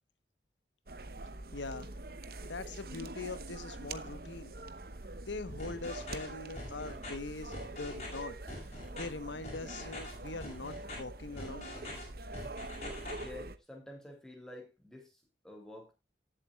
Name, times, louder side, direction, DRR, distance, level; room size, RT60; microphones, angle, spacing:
sound 1, 0.9-13.6, right 2 dB, 55° right, 0.9 m, -45 dB
voice 1, 1.5-1.9 2.4-4.5 5.3-8.4 8.9-11.7, left 3 dB, 85° left, 1.2 m, -42 dB
sound 2, 5.6-6.3 6.6-7.1 7.5-8.2 8.5-9.0 9.4-10.1 10.4-11.0 11.4-12.0 12.3-13.2, left 2 dB, 35° left, 6.6 m, -44 dB
voice 2, 13.1-15.9, left 1 dB, 5° left, 3.0 m, -49 dB
19.0 x 7.7 x 2.4 m
head